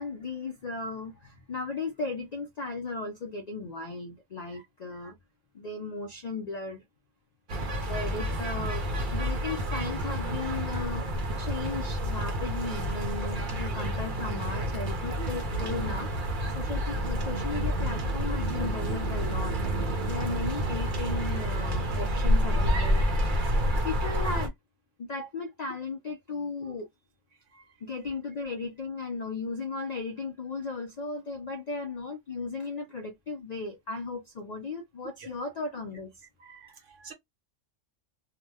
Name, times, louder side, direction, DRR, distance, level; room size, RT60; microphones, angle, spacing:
voice 1, 0.0-5.2 5.5-6.8 7.9-8.9 9.1-16.1 16.5-19.6 20.0-23.1 23.8-24.5 25.0-26.9 27.8-36.1, left 3 dB, 60° left, 0.4 m, -36 dB
sound 1, 7.5-24.5, equal, 45° right, 0.9 m, -29 dB
voice 2, 36.4-37.1, right 6 dB, 75° right, 1.3 m, -50 dB
2.8 x 2.1 x 3.3 m
omnidirectional pair, 1.3 m